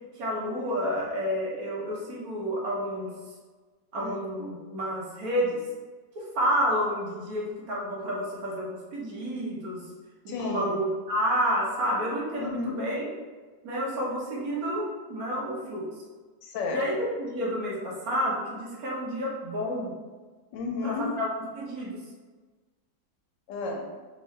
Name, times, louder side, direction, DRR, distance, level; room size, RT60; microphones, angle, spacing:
voice 1, 0.1-3.1 3.9-5.6 6.1-9.8 10.2-13.1 13.6-15.9 16.7-19.9 20.8-21.3 21.5-22.0, equal, 60° right, -4 dB, 1.2 m, -30 dB
voice 2, 10.3-10.8 12.4-12.8 16.4-16.8 20.5-21.1 23.5-23.9, left 3 dB, 85° left, 1 dB, 1.3 m, -32 dB
3.6 x 2.6 x 3.1 m, 1.4 s
omnidirectional pair, 2.0 m